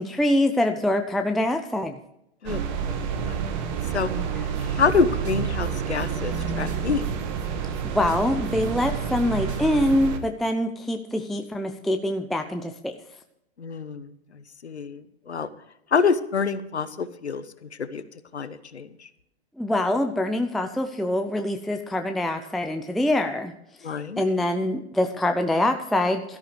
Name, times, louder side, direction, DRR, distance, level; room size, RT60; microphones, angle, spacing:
voice 1, 0.0-1.9 4.1-4.5 7.9-12.9 19.6-23.5 24.2-26.4, left 1 dB, ahead, 5 dB, 0.5 m, -24 dB
voice 2, 2.4-3.6 3.9-4.1 4.6-7.0 13.6-14.1 14.6-15.5 15.9-17.4 17.8-18.0 18.3-19.1 23.8-24.2, left 5 dB, 85° left, 13 dB, 1.1 m, -27 dB
sound 1, 2.5-10.2, right 7 dB, 45° right, 1.7 m, -29 dB
sound 2, 4.5-5.0 5.2-5.4 5.6-5.7 6.0-7.8 8.1-8.2 8.4-10.1, right 4 dB, 80° right, 5.1 m, -40 dB
17.0 x 13.0 x 3.2 m, 0.81 s
figure-of-eight pair, 110°, 33 cm